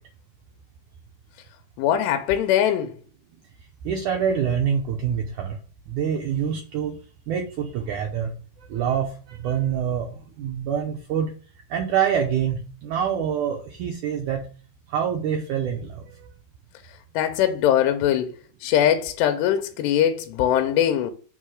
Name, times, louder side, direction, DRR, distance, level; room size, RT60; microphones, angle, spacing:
voice 1, 1.8-2.9 17.1-18.3 18.6-21.1, left 10 dB, 90° left, 2.9 m, -21 dB
voice 2, 3.8-5.6 5.9-7.0 7.3-8.3 8.6-11.3 11.7-14.4 14.9-16.3, right 8 dB, 90° right, 1.7 m, -26 dB
7.3 x 3.7 x 6.3 m
omnidirectional pair, 4.8 m